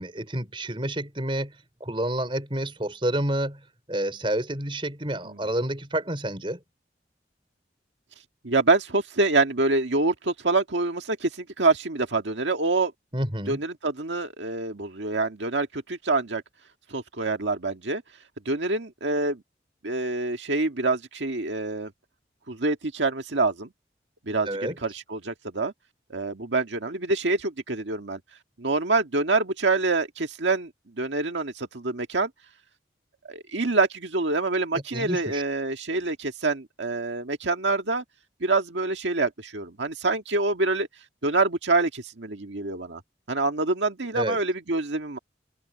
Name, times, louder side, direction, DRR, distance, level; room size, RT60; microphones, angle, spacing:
voice 1, 0.0-6.6 13.1-13.6 24.4-24.8 34.9-35.4 44.1-44.4, right 1 dB, 30° right, 4.7 m, -29 dB
voice 2, 8.4-12.9 13.5-16.4 16.9-18.0 18.4-19.4 19.8-21.9 22.5-23.7 24.2-25.7 26.1-28.2 28.6-30.7 31.0-32.3 33.3-38.0 38.4-40.9 41.2-43.0 43.3-45.2, right 3 dB, 90° right, 1.8 m, -26 dB
head